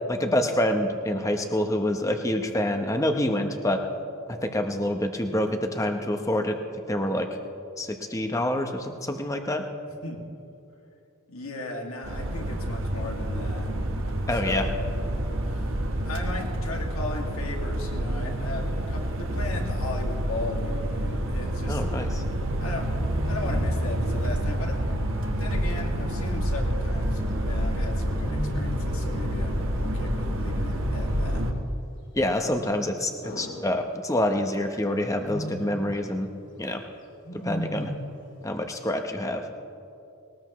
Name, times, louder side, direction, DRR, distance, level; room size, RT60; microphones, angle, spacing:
voice 1, 0.1-3.8 4.4-6.6 6.9-7.3 7.8-9.6 14.3-14.6 21.7-22.1 32.1-33.1 33.4-36.3 36.6-36.8 37.4-37.9 38.4-39.4, left 1 dB, 15° left, 5 dB, 0.9 m, -26 dB
voice 2, 11.3-13.7 14.3-14.7 15.5-15.6 16.0-21.8 22.6-22.8 23.2-24.7 25.4-31.4, left 2 dB, 80° left, 1 dB, 2.1 m, -37 dB
sound 1, 12.0-31.5, equal, 60° right, 1.2 m, -28 dB
Wild animals, 20.8-21.2 22.4-23.1 25.5-26.4 28.2-29.2 30.7-31.7 33.2-34.3 35.1-35.9 37.2-38.3, left 1 dB, 55° left, 2.2 m, -37 dB
21.0 x 19.0 x 3.1 m, 2.7 s
head